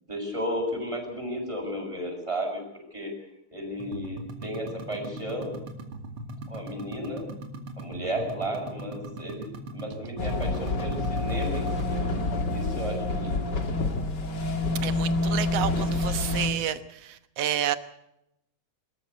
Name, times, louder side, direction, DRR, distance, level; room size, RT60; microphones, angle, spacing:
voice 1, 0.1-2.6 2.9-3.1 3.5-5.6 6.5-7.3 7.8-9.5 9.7-12.0 12.5-13.5, equal, 10° right, 2 dB, 6.3 m, -33 dB
sound 1, 3.8-12.3, right 2 dB, 45° right, 2.7 m, -40 dB
sound 2, 10.2-16.5, left 2 dB, 35° left, 2.4 m, -27 dB
voice 2, 14.8-17.8, right 10 dB, 60° right, 11 dB, 1.8 m, -30 dB
25.5 x 14.0 x 8.2 m, 0.83 s
omnidirectional pair, 3.9 m